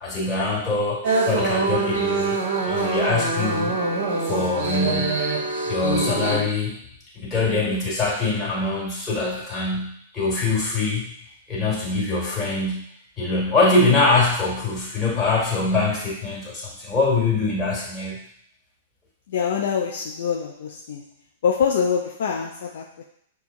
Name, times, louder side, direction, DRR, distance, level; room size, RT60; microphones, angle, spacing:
voice 1, 0.0-2.4 2.7-3.7 4.2-5.2 5.7-6.8 7.1-11.0 11.5-12.9 13.2-18.2, left 3 dB, 15° left, -5 dB, 1.6 m, -23 dB
sound 1, 1.0-6.4, right 3 dB, 50° right, 0.9 m, -24 dB
voice 2, 19.3-21.0 21.4-23.0, left 7 dB, 55° left, 0 dB, 0.4 m, -25 dB
6.5 x 2.3 x 2.5 m, 0.68 s
figure-of-eight pair, 100°, 0 cm